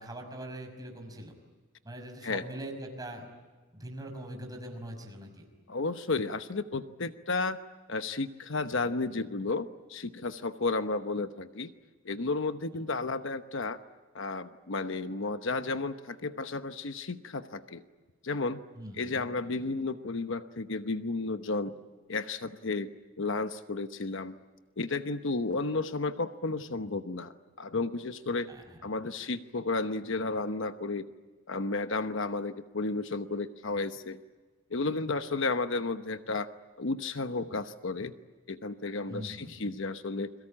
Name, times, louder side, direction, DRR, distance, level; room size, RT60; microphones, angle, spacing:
voice 1, 0.0-1.3 1.8-3.3 3.7-5.5 18.8-19.3 28.5-28.6 39.1-39.5, right 1 dB, 20° right, 3 dB, 5.7 m, -42 dB
voice 2, 5.7-7.6 7.9-11.7 12.0-13.8 14.1-17.8 18.2-18.6 19.0-21.7 22.1-22.9 23.2-24.4 24.8-28.5 28.8-31.1 31.5-34.2 34.7-36.5 36.8-38.1 38.5-40.3, left 3 dB, 65° left, 10 dB, 1.0 m, -32 dB
30.0 x 22.5 x 8.8 m, 1.3 s
head